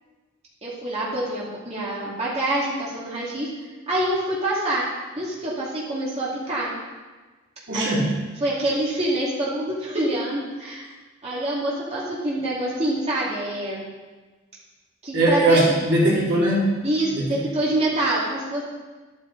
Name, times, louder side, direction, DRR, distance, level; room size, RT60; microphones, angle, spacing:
voice 1, 0.6-3.5 3.9-4.8 5.1-6.7 7.7-8.0 8.4-10.9 11.2-13.8 15.0-15.6 16.8-18.6, right 1 dB, 30° right, -7 dB, 2.5 m, -26 dB
voice 2, 7.7-8.0 15.1-16.6 17.1-17.4, right 1 dB, 60° right, -5 dB, 3.0 m, -20 dB
11.5 x 9.1 x 4.0 m, 1.3 s
head